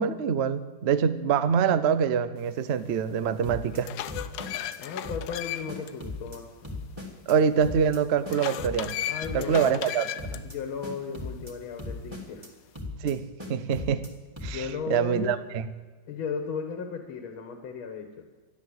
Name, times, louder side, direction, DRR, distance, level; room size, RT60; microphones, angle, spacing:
voice 1, 0.0-3.9 7.3-9.0 9.3-10.4 13.0-13.2 13.5-14.0 14.4-15.7, right 7 dB, 80° right, 13 dB, 0.6 m, -25 dB
sound 1, 2.9-3.0 3.5-5.9 6.3-6.4 8.3-10.4, left 11 dB, 70° left, 1.2 m, -35 dB
sound 2, 3.4-3.8 4.1-4.8 5.0-5.4 5.7-6.4 6.6-7.3 7.6-8.0 8.2-8.9 9.2-9.9 10.2-10.6 10.8-11.5 11.8-12.5 12.7-13.1 13.4-14.1 14.4-14.7, left 2 dB, 15° right, 2.2 m, -38 dB
voice 2, 4.8-6.5 9.1-9.8 10.4-12.5 14.4-15.4 16.1-18.3, left 6 dB, 90° left, 5 dB, 2.0 m, -35 dB
13.0 x 11.0 x 7.9 m, 1.4 s
omnidirectional pair, 2.2 m